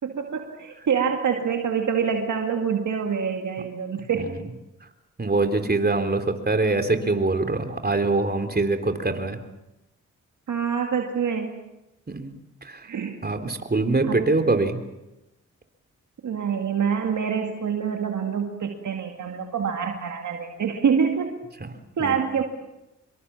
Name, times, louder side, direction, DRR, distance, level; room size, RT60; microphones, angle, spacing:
voice 1, 0.0-4.3 10.5-11.6 12.8-13.1 14.2-14.3 16.2-21.3 22.0-22.4, right 7 dB, 75° right, 3 dB, 2.2 m, -26 dB
voice 2, 4.1-4.5 5.2-9.4 12.1-12.3 12.6-12.9 13.2-14.8 21.6-21.7 22.0-22.2, right 3 dB, 35° right, 7 dB, 3.6 m, -24 dB
26.0 x 22.5 x 7.2 m, 0.96 s
cardioid pair, 50°, 30 cm